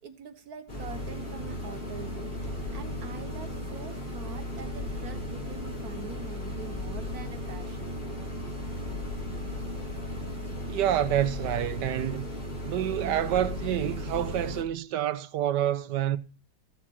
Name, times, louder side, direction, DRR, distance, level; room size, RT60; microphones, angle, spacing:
voice 1, 0.0-8.2 8.6-8.9, right 5 dB, 60° right, 1.7 m, -44 dB
sound 1, 0.7-14.6, left 1 dB, 30° left, 3.4 m, -36 dB
sound 2, 4.6-6.2 6.7-8.1 8.8-10.5 11.0-12.4 13.1-14.7, left 7 dB, 5° left, 4.2 m, -44 dB
voice 2, 10.7-12.3 12.6-16.2, right 11 dB, 80° right, 1.3 m, -28 dB
15.0 x 7.4 x 4.2 m
omnidirectional pair, 1.9 m